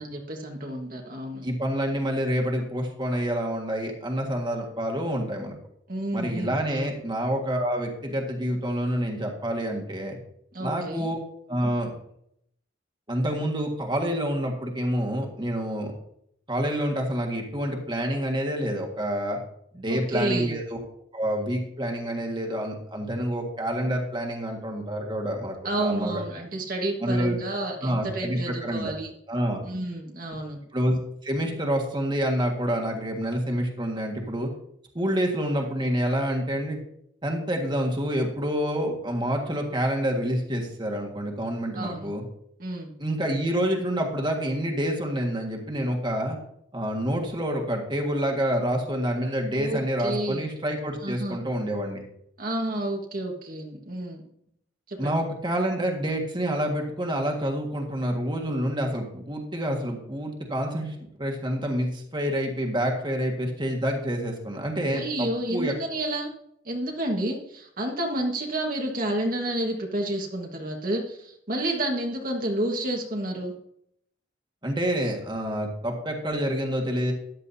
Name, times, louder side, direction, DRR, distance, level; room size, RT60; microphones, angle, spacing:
voice 1, 0.0-1.4 5.9-6.8 10.5-11.1 19.9-20.5 25.6-29.1 29.6-30.6 41.7-42.1 42.6-42.9 49.5-50.4 51.0-51.4 52.4-54.2 54.9-55.2 64.9-66.3 66.6-73.5, right 1 dB, 50° right, 1 dB, 1.5 m, -30 dB
voice 2, 1.4-5.5 6.1-10.2 10.6-11.2 11.5-11.9 13.1-15.9 16.5-19.4 19.7-20.8 21.1-26.2 27.0-27.4 27.8-28.9 29.3-29.6 30.7-34.5 34.9-36.8 37.2-42.2 43.0-46.4 46.7-52.0 55.0-65.7 74.6-77.1, equal, 25° right, 1 dB, 1.7 m, -27 dB
14.0 x 10.5 x 2.8 m, 0.73 s
head